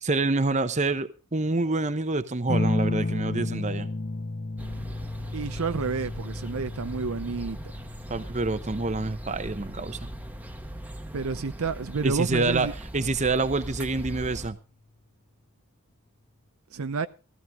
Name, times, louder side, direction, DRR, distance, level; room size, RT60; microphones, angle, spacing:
voice 1, 0.0-3.9 8.1-10.1 12.0-12.7 12.9-14.6, right 3 dB, 30° right, 0.9 m, -27 dB
sound 1, 2.5-11.6 13.0-13.6, left 2 dB, 35° left, 0.8 m, -33 dB
sound 2, 4.6-14.5, right 1 dB, 5° right, 1.1 m, -40 dB
voice 2, 5.3-7.6 11.1-12.7 16.7-17.1, right 4 dB, 70° right, 0.7 m, -30 dB
16.0 x 14.0 x 3.6 m
head